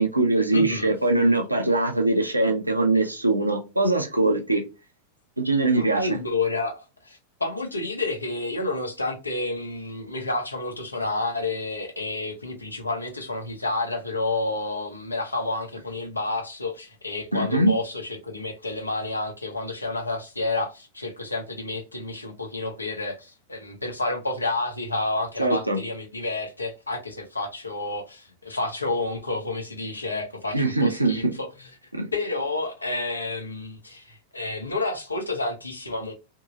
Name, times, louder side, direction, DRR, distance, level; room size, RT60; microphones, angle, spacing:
voice 1, 0.0-4.6 5.4-6.1 17.3-17.7 25.4-25.8 30.5-31.3 31.9-32.0, right 2 dB, 85° right, 0.6 m, -22 dB
voice 2, 0.5-0.9 5.7-31.7 32.1-36.1, left 2 dB, 80° left, 0.8 m, -30 dB
3.0 x 2.7 x 2.5 m
figure-of-eight pair, 90°, 0 cm